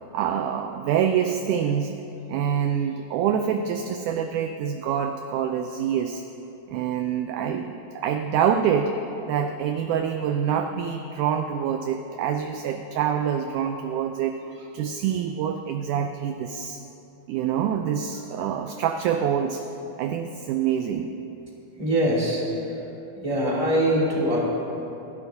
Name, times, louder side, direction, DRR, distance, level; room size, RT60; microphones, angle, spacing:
voice 1, 0.1-2.0 2.3-6.2 6.7-8.9 9.2-16.8 17.3-19.7 20.0-21.1, right 8 dB, 85° right, 6 dB, 1.8 m, -26 dB
voice 2, 21.8-22.4 23.2-24.4, right 1 dB, 10° right, -6 dB, 2.3 m, -22 dB
29.5 x 11.0 x 2.7 m, 3.0 s
omnidirectional pair, 4.1 m